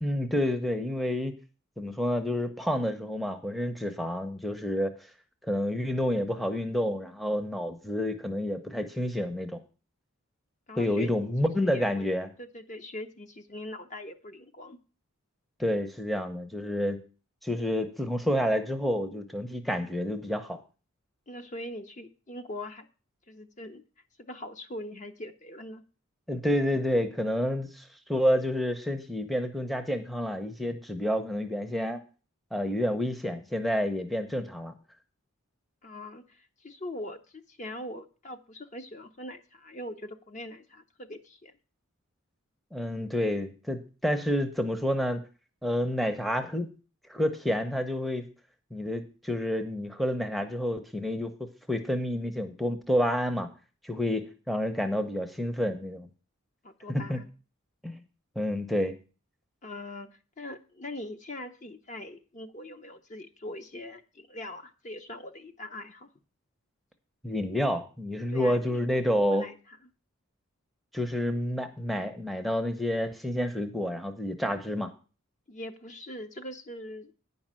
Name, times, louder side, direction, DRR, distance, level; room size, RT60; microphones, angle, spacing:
voice 1, 0.0-1.3 1.8-4.9 5.4-9.6 10.7-12.3 15.6-17.0 17.4-20.6 26.3-32.0 32.5-34.7 42.7-45.2 45.6-46.7 47.1-48.3 48.7-51.3 51.7-53.5 53.8-56.1 56.9-57.2 57.8-58.0 58.4-59.0 67.2-69.5 70.9-74.9, equal, ahead, 5 dB, 0.7 m, -29 dB
voice 2, 10.7-11.3 11.6-12.1 12.4-14.8 21.3-22.9 23.3-23.8 24.2-25.8 35.8-41.5 56.6-57.3 59.6-60.1 60.4-66.1 68.3-69.5 75.5-77.1, left 1 dB, 35° left, 7 dB, 0.7 m, -42 dB
9.8 x 5.4 x 7.4 m, 0.36 s
head